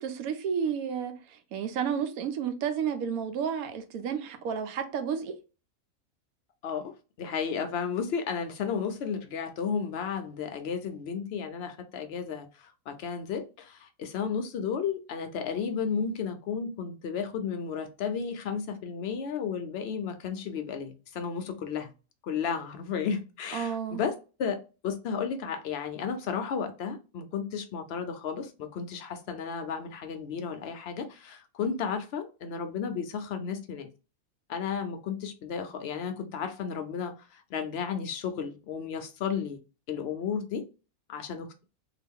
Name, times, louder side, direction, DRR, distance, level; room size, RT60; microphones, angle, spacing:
voice 1, 0.0-5.3 23.5-24.0, right 7 dB, 80° right, 1.1 m, -31 dB
voice 2, 7.2-21.9 22.2-24.6 24.8-33.9 34.5-39.6 39.9-40.7 41.1-41.5, left 6 dB, 65° left, 0.6 m, -33 dB
2.8 x 2.3 x 3.5 m
omnidirectional pair, 1.5 m